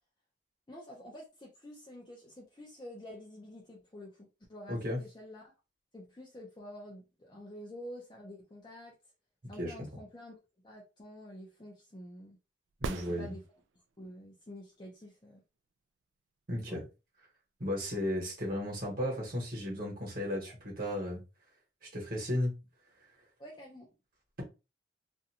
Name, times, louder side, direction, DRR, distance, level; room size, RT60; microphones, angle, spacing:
voice 1, 0.7-5.4 5.9-8.9 9.5-10.3 10.6-12.4 13.0-13.4 14.0-15.4 16.7-16.8 23.4-23.9, equal, 25° left, 0.5 m, -48 dB
voice 2, 4.7-5.0 9.6-9.9 12.8-13.3 16.5-16.8 17.6-21.2 21.8-22.5, left 1 dB, 50° right, 1.2 m, -34 dB
sound 1, 12.7-13.9 17.8-17.9, right 4 dB, 80° right, 0.3 m, -39 dB
2.5 x 2.2 x 2.7 m
head